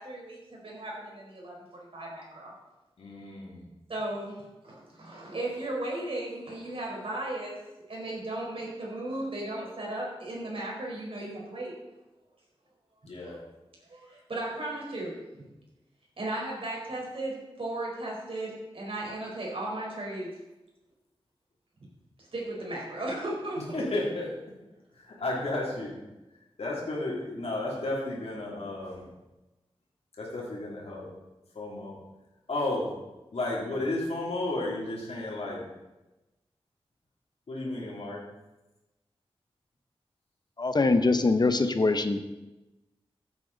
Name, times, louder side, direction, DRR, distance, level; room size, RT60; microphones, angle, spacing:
voice 1, 0.0-2.5 3.9-7.6 7.9-11.7 13.2-13.4 13.9-15.5 16.2-20.3 21.8-21.9 22.2-23.9, right 1 dB, 65° right, -3 dB, 4.3 m, -36 dB
voice 2, 3.0-3.6 13.0-13.4 23.7-24.3 24.9-25.9 26.6-29.1 30.2-31.1 31.5-31.9 32.5-32.9 33.3-35.6 37.5-38.2, left 2 dB, 85° left, -4 dB, 2.9 m, -33 dB
voice 3, 40.6-42.2, left 3 dB, 45° left, 9 dB, 0.9 m, -23 dB
15.0 x 8.4 x 4.0 m, 1.0 s
wide cardioid pair, 100°, 10 cm